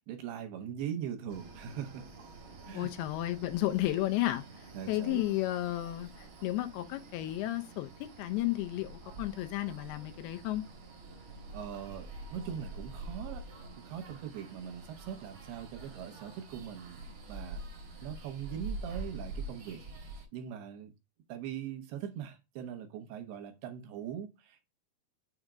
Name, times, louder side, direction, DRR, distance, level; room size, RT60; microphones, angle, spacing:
voice 1, 0.0-2.1 2.7-2.9 4.7-5.2 11.5-13.5 13.8-17.0 17.3-17.6 18.0-19.8 20.3-20.9 21.3-24.7, right 9 dB, 75° right, 2.8 m, -41 dB
sound 1, 1.3-20.2, right 2 dB, 50° right, 1.6 m, -46 dB
voice 2, 2.7-4.4 4.9-10.6, left 15 dB, 80° left, 2.4 m, -33 dB
6.5 x 3.5 x 4.9 m
omnidirectional pair, 4.9 m